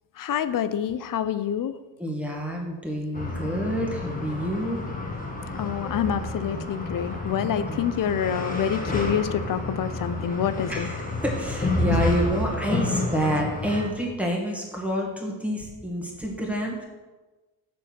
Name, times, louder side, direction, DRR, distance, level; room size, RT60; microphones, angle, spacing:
voice 1, 0.2-1.8 5.6-10.9 11.9-12.0, left 9 dB, 50° left, 13 dB, 0.5 m, -27 dB
voice 2, 2.0-4.8 7.7-7.8 10.7-16.8, equal, 5° right, -2 dB, 1.8 m, -27 dB
sound 1, 3.1-13.9, left 2 dB, 20° left, 1.4 m, -31 dB
6.5 x 4.7 x 6.2 m, 1.2 s
cardioid pair, 100°, 45 cm